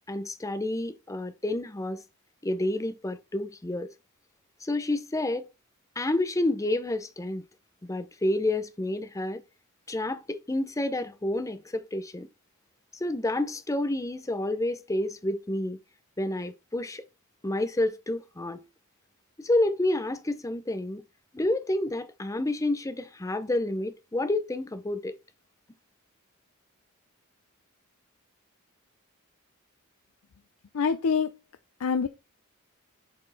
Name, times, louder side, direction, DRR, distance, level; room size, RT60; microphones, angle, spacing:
voice 1, 0.1-2.0 2.4-3.9 4.6-5.5 6.0-7.4 7.8-9.4 9.9-12.3 13.0-15.8 16.2-17.0 17.4-18.6 19.4-21.0 21.3-25.1, left 1 dB, 15° left, 0.6 m, -29 dB
voice 2, 30.7-31.3 31.8-32.1, left 6 dB, 80° left, 0.5 m, -25 dB
7.4 x 4.4 x 3.9 m
head